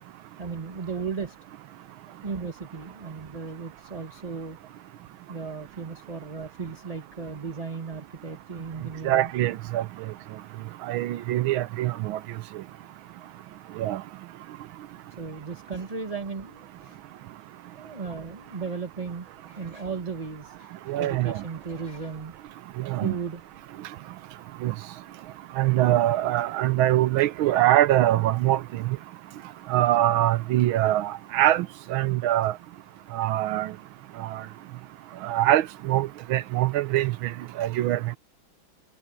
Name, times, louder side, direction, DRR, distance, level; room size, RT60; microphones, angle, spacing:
voice 1, 0.4-1.3 2.1-4.6 5.3-9.3 15.2-17.0 17.7-22.3 23.0-23.4, right 5 dB, 20° right, 1.5 m, -35 dB
voice 2, 9.0-9.8 10.9-12.2 13.8-14.0 20.9-21.4 22.9-23.1 24.6-24.7 25.6-29.0 29.7-32.5 33.1-33.7 34.2-34.4 35.2-37.3 37.6-38.0, right 14 dB, 80° right, 1.5 m, -23 dB
omnidirectional pair, 2.2 m